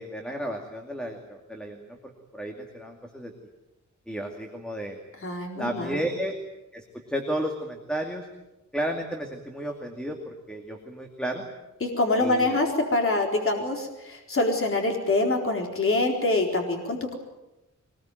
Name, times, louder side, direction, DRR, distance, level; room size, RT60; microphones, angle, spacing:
voice 1, 0.0-2.0 2.3-3.3 4.1-5.0 5.6-6.4 6.7-8.3 8.7-11.5 12.2-12.6, equal, 5° left, 2 dB, 2.5 m, -33 dB
voice 2, 5.2-6.0 11.8-17.1, left 2 dB, 45° left, 1 dB, 4.2 m, -25 dB
23.5 x 21.0 x 9.2 m, 0.98 s
wide cardioid pair, 160°, 31 cm